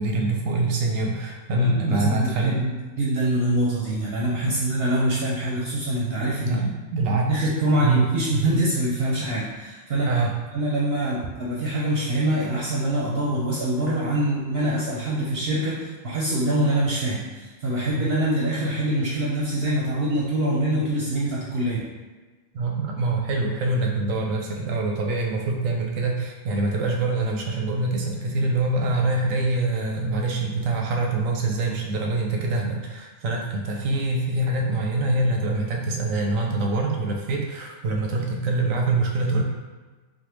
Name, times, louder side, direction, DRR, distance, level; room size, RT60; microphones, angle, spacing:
voice 1, 0.0-2.6 4.4-4.6 6.4-7.5 7.8-8.0 10.1-10.3 22.5-39.4, right 2 dB, 90° right, 1 dB, 1.0 m, -25 dB
voice 2, 1.5-6.6 7.1-10.2 10.5-21.8, right 1 dB, 60° right, -6 dB, 0.7 m, -24 dB
3.4 x 2.1 x 3.0 m, 1.3 s
omnidirectional pair, 1.3 m